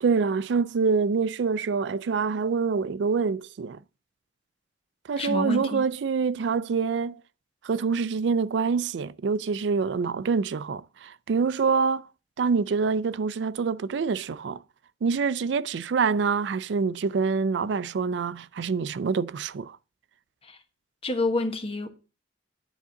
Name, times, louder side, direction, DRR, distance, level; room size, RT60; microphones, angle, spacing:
voice 1, 0.0-3.8 5.1-7.2 7.6-12.0 12.4-14.6 15.0-19.8, right 5 dB, 75° right, 0.4 m, -26 dB
voice 2, 5.2-5.8 20.4-20.6 21.0-21.9, left 2 dB, 30° left, 1.2 m, -28 dB
10.0 x 3.8 x 7.0 m
head